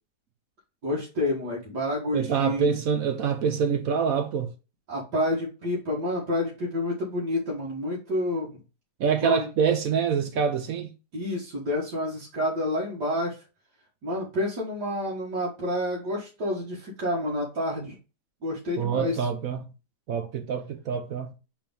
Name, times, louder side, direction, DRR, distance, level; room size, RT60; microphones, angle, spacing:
voice 1, 0.8-2.7 4.9-8.5 9.2-9.5 11.1-13.4 14.0-18.0 18.4-19.3, left 1 dB, 90° right, 2.4 m, -29 dB
voice 2, 2.1-4.5 9.0-10.9 18.8-19.6 20.1-21.3, right 6 dB, 65° right, 1.1 m, -26 dB
5.1 x 3.6 x 5.3 m
omnidirectional pair, 1.7 m